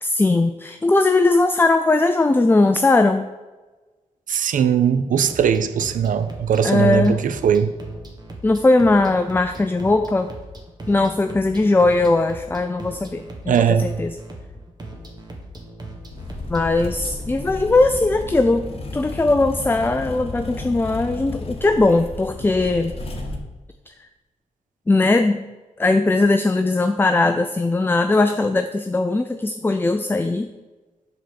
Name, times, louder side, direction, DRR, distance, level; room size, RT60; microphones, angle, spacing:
voice 1, 0.0-3.2 6.6-7.2 8.4-10.3 10.9-14.2 16.5-22.9 23.9-24.0 24.9-25.4 25.8-30.5, left 2 dB, 15° left, 0.4 m, -19 dB
voice 2, 4.3-7.7 13.5-14.0, right 8 dB, 85° right, 0.6 m, -19 dB
sound 1, 5.2-17.2, right 1 dB, 30° right, 1.5 m, -39 dB
sound 2, 16.1-23.4, left 2 dB, 45° left, 1.3 m, -33 dB
7.9 x 4.2 x 6.9 m
cardioid pair, 80°, 13 cm